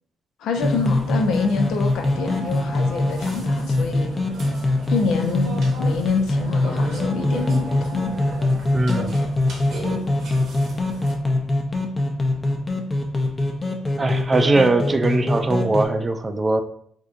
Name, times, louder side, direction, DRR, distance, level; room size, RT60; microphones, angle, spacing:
voice 1, 0.4-4.1 4.9-8.0, left 4 dB, 80° left, 4 dB, 0.5 m, -26 dB
sound 1, 0.5-15.8, left 2 dB, 20° left, 0.5 m, -23 dB
Burping eructation, 0.5-11.1, right 3 dB, 75° right, 0.9 m, -36 dB
voice 2, 8.7-9.2 14.0-16.6, right 2 dB, 25° right, 8 dB, 0.3 m, -20 dB
3.5 x 2.7 x 2.5 m, 0.67 s
cardioid pair, 90°, 0 cm